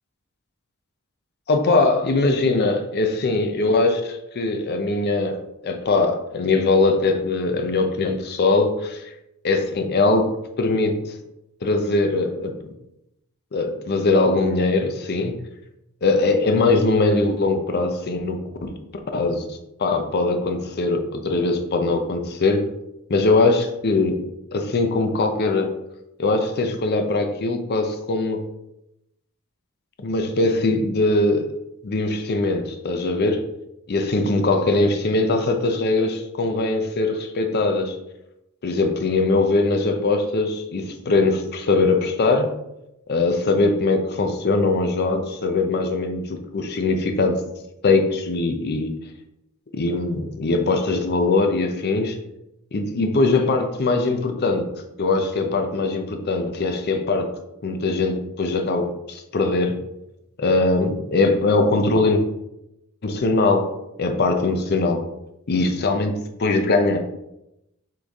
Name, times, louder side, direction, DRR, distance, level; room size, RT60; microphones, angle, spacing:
voice 1, 1.5-9.1 9.4-11.2 11.6-12.7 13.5-15.4 16.0-18.8 19.1-22.6 23.1-24.2 24.5-25.7 26.2-28.4 30.0-31.5 31.8-33.4 33.9-38.0 38.6-42.6 43.1-47.3 47.8-48.9 49.7-52.2 52.7-54.7 55.0-57.3 57.6-59.8 60.4-62.2 63.0-63.7 64.0-65.1 65.5-67.0, left 3 dB, 45° left, 6 dB, 0.5 m, -21 dB
4.4 x 3.2 x 3.4 m, 0.87 s
head